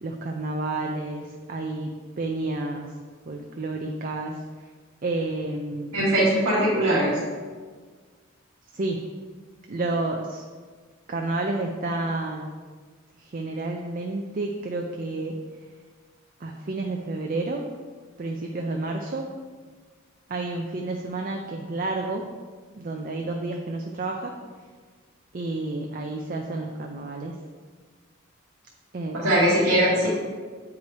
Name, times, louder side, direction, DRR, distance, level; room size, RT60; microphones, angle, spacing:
voice 1, 0.0-2.9 3.3-4.4 5.0-6.0 8.7-9.0 9.7-10.4 11.1-12.5 13.2-15.4 16.4-17.7 18.2-19.3 20.3-22.3 22.8-24.3 25.3-27.4 28.9-29.6, right 2 dB, 40° right, 2 dB, 0.5 m, -30 dB
voice 2, 5.9-7.2 29.1-30.1, right 1 dB, 75° right, -10 dB, 2.0 m, -21 dB
8.1 x 4.8 x 4.1 m, 1.5 s
head